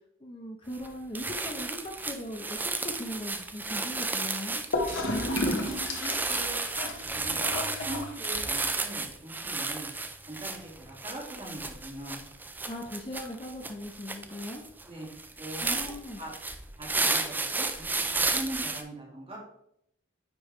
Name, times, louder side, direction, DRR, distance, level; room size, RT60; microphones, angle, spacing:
voice 1, 0.2-4.6 12.7-14.6 15.6-16.2, left 1 dB, 25° left, 2 dB, 0.6 m, -39 dB
sound 1, 0.7-0.9 1.1-18.8, right 3 dB, 10° right, 0.3 m, -33 dB
Gurgling / Toilet flush, 4.7-8.7, left 1 dB, 80° left, 1.0 m, -32 dB
voice 2, 5.6-6.6 7.0-7.5 7.9-9.9 10.3-12.2 14.9-15.1 15.4-15.6 16.2-16.3 16.8-19.4, right 1 dB, 30° right, -3 dB, 1.9 m, -41 dB
9.5 x 3.4 x 3.2 m, 0.75 s
head